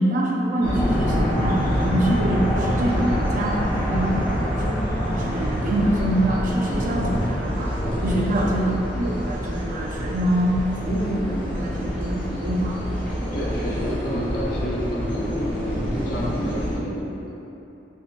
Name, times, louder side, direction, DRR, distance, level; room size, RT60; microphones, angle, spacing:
voice 1, 0.0-4.3 4.6-4.8 5.1-10.5 10.8-12.8, right 1 dB, 45° right, -2 dB, 0.4 m, -25 dB
sound 1, 0.6-16.7, equal, 10° left, 0.8 m, -26 dB
voice 2, 13.3-17.3, equal, 55° left, -5 dB, 0.5 m, -29 dB
5.2 x 2.2 x 2.3 m, 2.9 s
head